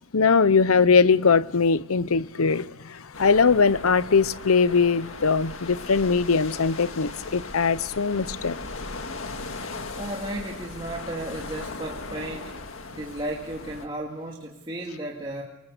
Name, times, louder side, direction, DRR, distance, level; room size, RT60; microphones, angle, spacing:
voice 1, 0.1-8.6, left 5 dB, 85° left, 0.8 m, -21 dB
sound 1, 3.1-13.9, left 3 dB, 70° left, 1.9 m, -38 dB
voice 2, 10.0-12.5 12.9-15.4, right 1 dB, 25° right, 2.3 m, -34 dB
26.0 x 24.0 x 6.7 m
head